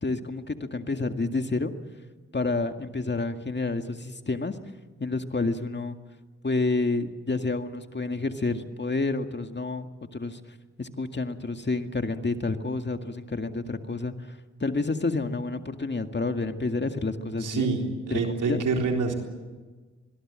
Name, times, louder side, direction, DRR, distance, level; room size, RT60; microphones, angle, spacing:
voice 1, 0.0-1.7 2.3-4.6 5.0-6.0 6.4-10.4 10.8-14.3 14.6-17.7 18.1-18.6, left 3 dB, 35° left, 7 dB, 2.1 m, -29 dB
voice 2, 17.4-19.1, right 4 dB, 85° right, 2 dB, 3.8 m, -26 dB
24.5 x 22.0 x 7.7 m, 1.3 s
supercardioid pair, 40°, 31 cm